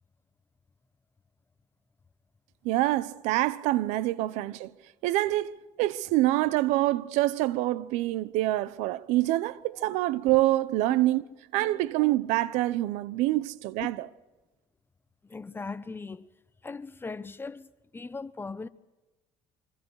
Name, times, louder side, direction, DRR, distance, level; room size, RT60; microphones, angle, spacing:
voice 1, 2.6-4.7 5.0-11.2 11.5-14.0, right 16 dB, 85° right, 0.9 m, -26 dB
voice 2, 15.2-16.3 16.6-18.7, left 4 dB, 20° left, 1.0 m, -39 dB
25.5 x 24.5 x 4.8 m
supercardioid pair, 95°, 12 cm